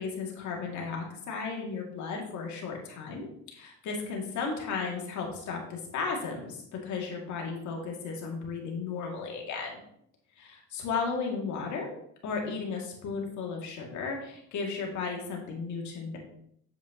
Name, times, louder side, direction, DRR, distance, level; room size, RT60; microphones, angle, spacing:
voice 1, 0.0-9.8 10.4-11.9 12.2-16.2, left 5 dB, 65° left, 0 dB, 2.5 m, -35 dB
8.4 x 7.2 x 3.0 m, 0.70 s
supercardioid pair, 75°, 32 cm